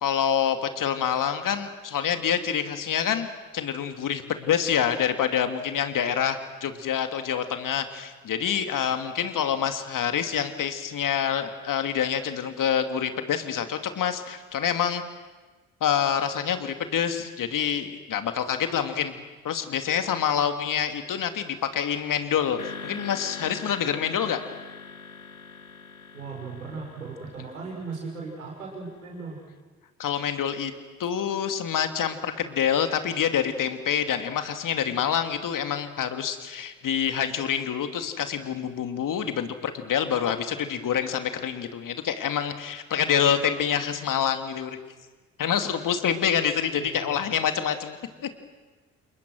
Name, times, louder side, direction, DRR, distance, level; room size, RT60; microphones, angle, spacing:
voice 1, 0.0-3.3 3.5-15.0 15.8-19.2 19.4-24.4 30.0-30.7 31.0-44.8 45.4-48.3, left 8 dB, 50° left, 7 dB, 2.6 m, -27 dB
sound 1, 22.6-29.0, left 5 dB, 85° left, 1.2 m, -43 dB
voice 2, 26.1-29.4 46.8-47.2, right 4 dB, 80° right, -1 dB, 6.1 m, -37 dB
29.0 x 28.5 x 6.4 m, 1.3 s
figure-of-eight pair, 45°, 41 cm